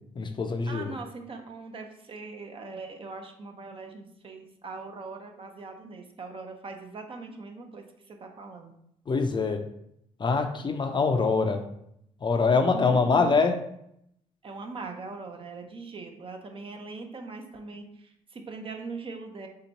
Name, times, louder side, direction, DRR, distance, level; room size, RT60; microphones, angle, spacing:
voice 1, 0.2-0.9 9.1-9.6 10.2-11.6 12.2-13.5, left 4 dB, 35° left, 5 dB, 0.5 m, -24 dB
voice 2, 0.7-8.7 12.7-13.4 14.4-19.5, right 3 dB, 40° right, 4 dB, 0.7 m, -40 dB
3.5 x 2.9 x 3.9 m, 0.75 s
supercardioid pair, 70°, 14 cm